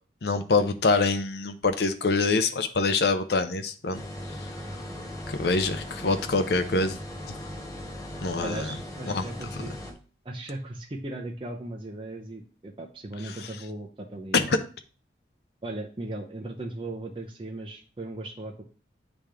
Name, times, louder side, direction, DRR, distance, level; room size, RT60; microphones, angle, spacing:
voice 1, 0.2-4.0 5.3-7.0 8.2-8.7 9.1-9.2 9.6-9.7 14.3-14.6, left 3 dB, 60° left, 9 dB, 0.6 m, -25 dB
sound 1, 3.9-9.9, left 1 dB, 20° left, 0.8 m, -38 dB
voice 2, 8.4-9.8 10.2-14.5 15.6-18.6, right 2 dB, 25° right, 0 dB, 0.6 m, -37 dB
8.6 x 3.5 x 3.4 m, 0.38 s
head